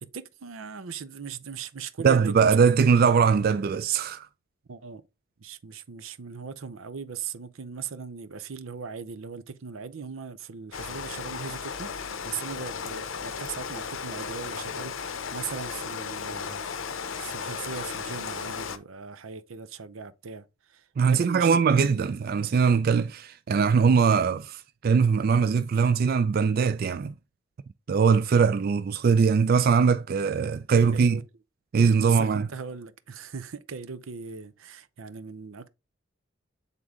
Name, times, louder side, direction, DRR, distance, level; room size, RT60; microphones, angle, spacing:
voice 1, 0.0-2.2 2.4-2.6 4.7-5.0 5.4-21.6 30.9-31.2 32.0-35.7, right 6 dB, 85° right, 0.6 m, -39 dB
voice 2, 2.0-4.3 21.0-27.2 27.9-31.2 31.7-32.5, right 5 dB, 45° right, 0.3 m, -21 dB
Rain, 10.7-18.8, left 6 dB, 75° left, 0.6 m, -35 dB
7.9 x 3.7 x 3.6 m
head